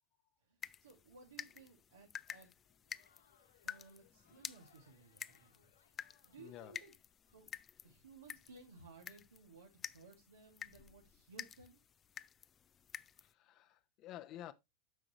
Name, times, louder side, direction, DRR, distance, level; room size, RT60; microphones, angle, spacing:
voice 1, 0.4-2.5 3.6-6.9 7.3-7.5 7.8-11.8, right 4 dB, 90° right, 1.9 m, -59 dB
sound 1, 0.6-13.3, left 8 dB, 30° left, 0.3 m, -51 dB
Crowd, 2.7-7.4, left 7 dB, 85° left, 1.5 m, -72 dB
voice 2, 6.4-6.8 13.2-14.5, left 12 dB, 45° left, 0.7 m, -51 dB
9.3 x 6.2 x 2.9 m
hypercardioid pair, 95°, 0 cm